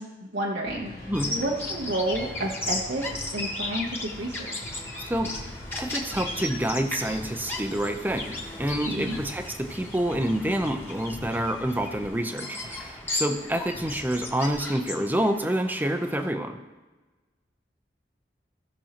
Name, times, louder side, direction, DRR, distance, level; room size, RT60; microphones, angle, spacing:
voice 1, 0.0-4.8 8.9-9.2, right 1 dB, 70° right, -3 dB, 0.9 m, -31 dB
sound 1, 0.6-14.7, left 1 dB, 50° left, 1.2 m, -43 dB
Bird vocalization bird call bird song, 1.1-16.3, left 2 dB, 15° left, 1.4 m, -36 dB
voice 2, 5.8-8.3 8.6-16.6, right 1 dB, 10° right, 6 dB, 0.6 m, -27 dB
16.0 x 6.2 x 2.9 m, 1.2 s
head